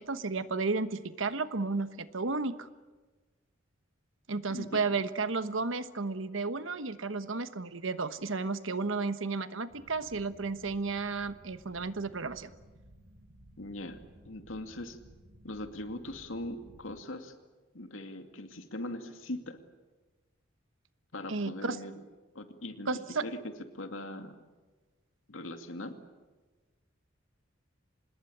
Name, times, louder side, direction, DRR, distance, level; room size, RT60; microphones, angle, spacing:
voice 1, 0.0-2.7 4.3-12.5 21.3-21.8 22.9-23.3, right 3 dB, 80° right, 12 dB, 1.2 m, -33 dB
voice 2, 4.5-4.9 13.6-15.0 15.4-17.3 17.7-19.6 21.1-21.9 22.3-22.9 23.2-24.4 25.3-25.9, left 1 dB, 90° left, 6 dB, 2.4 m, -40 dB
sound 1, 9.7-17.0, equal, 55° right, 2.9 m, -57 dB
26.0 x 20.5 x 8.7 m, 1.3 s
head